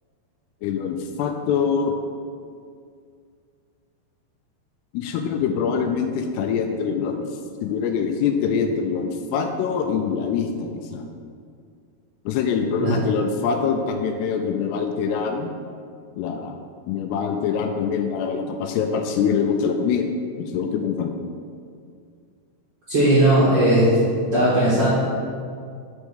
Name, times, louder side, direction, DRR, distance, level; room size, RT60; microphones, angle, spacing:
voice 1, 0.6-1.9 4.9-7.2 7.6-11.0 12.3-15.5 16.1-16.6 16.9-20.1 20.4-21.1, left 6 dB, 85° left, 5 dB, 2.5 m, -24 dB
voice 2, 22.9-23.9 24.3-24.9, right 1 dB, 55° right, -10 dB, 1.6 m, -17 dB
6.6 x 6.2 x 5.0 m, 2.2 s
omnidirectional pair, 4.9 m